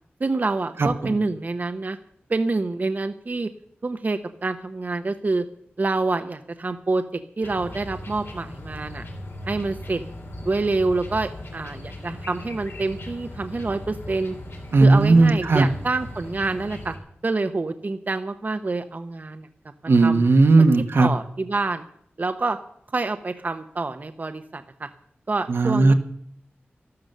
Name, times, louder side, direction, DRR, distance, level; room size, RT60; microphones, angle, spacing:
voice 1, 0.2-2.0 2.3-3.5 3.8-5.4 5.8-9.0 9.5-10.0 10.4-14.4 14.8-16.9 17.2-19.5 20.0-20.2 21.0-21.8 22.2-22.6 22.9-24.9 25.3-25.9, right 3 dB, 45° right, 8 dB, 0.9 m, -27 dB
voice 2, 0.8-1.2 14.7-15.7 19.9-21.1 25.5-25.9, right 3 dB, 75° right, 7 dB, 1.3 m, -16 dB
sound 1, 7.4-17.0, left 1 dB, 80° left, 3.3 m, -38 dB
13.0 x 12.5 x 6.7 m, 0.67 s
wide cardioid pair, 100°, 4 cm